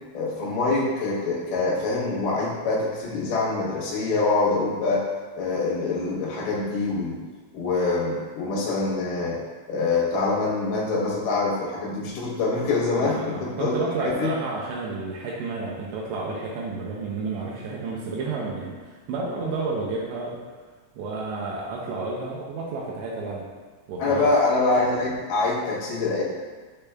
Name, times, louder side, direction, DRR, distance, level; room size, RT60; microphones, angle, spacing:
voice 1, 0.1-5.0 5.4-7.2 7.5-9.4 9.7-14.3 24.0-26.2, left 3 dB, 85° left, -5 dB, 1.8 m, -25 dB
voice 2, 13.0-20.4 21.0-23.5 23.9-24.3, right 3 dB, 85° right, -4 dB, 2.5 m, -31 dB
6.8 x 3.3 x 2.2 m, 1.4 s
omnidirectional pair, 5.4 m